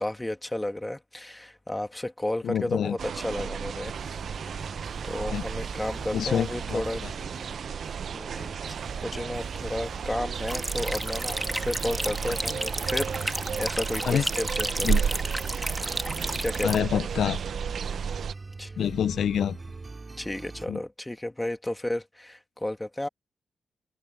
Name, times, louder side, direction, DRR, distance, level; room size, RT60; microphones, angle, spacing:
voice 1, 0.0-4.2 4.5-7.0 8.1-15.1 16.4-16.9 17.8-18.0 18.6-18.7 20.2-23.1, left 1 dB, 15° left, 2.1 m, -33 dB
voice 2, 2.4-3.0 5.3-5.4 6.1-7.1 7.5-7.6 14.1-14.2 14.8-15.0 16.6-17.4 18.8-19.6 20.7-20.8, left 9 dB, 80° left, 0.3 m, -27 dB
sound 1, 3.0-18.3, right 7 dB, 70° right, 0.5 m, -33 dB
sound 2, 3.9-20.7, right 3 dB, 35° right, 5.3 m, -43 dB
sound 3, 10.5-16.8, right 1 dB, 10° right, 1.6 m, -32 dB
cardioid pair, 70°, 0 cm